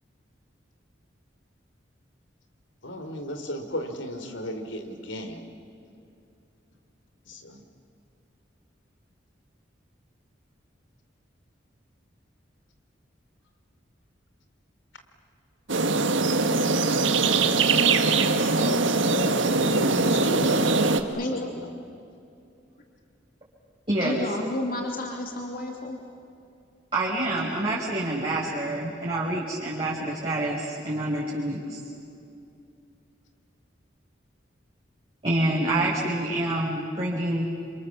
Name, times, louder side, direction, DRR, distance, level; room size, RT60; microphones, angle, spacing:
voice 1, 2.8-5.4 7.3-7.6 18.6-21.7, equal, 85° left, 7 dB, 3.4 m, -34 dB
sound 1, 15.7-21.0, right 3 dB, 85° right, 1.7 m, -22 dB
voice 2, 21.1-21.5 24.0-26.0, left 2 dB, 50° left, 1 dB, 2.8 m, -31 dB
voice 3, 23.9-24.2 26.9-31.8 35.2-37.5, right 1 dB, 30° right, -7 dB, 4.9 m, -27 dB
29.5 x 26.5 x 7.3 m, 2.6 s
head